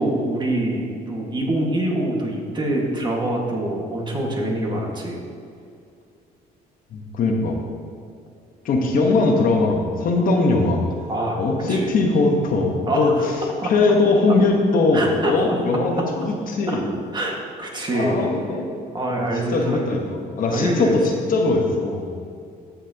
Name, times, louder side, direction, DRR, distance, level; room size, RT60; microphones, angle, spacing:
voice 1, 0.0-5.2 11.1-11.4 11.7-11.9 12.9-13.2 13.6-13.7 14.9-15.6 16.7-16.8 17.1-18.2 18.9-19.9 20.5-21.2, right 1 dB, 25° right, -1 dB, 1.7 m, -25 dB
voice 2, 6.9-7.6 8.6-10.8 11.4-13.3 13.6-16.8 17.9-18.6 19.5-22.1, left 3 dB, 55° left, 1 dB, 1.2 m, -20 dB
15.0 x 5.8 x 2.9 m, 2.3 s
cardioid pair, 110°, 17 cm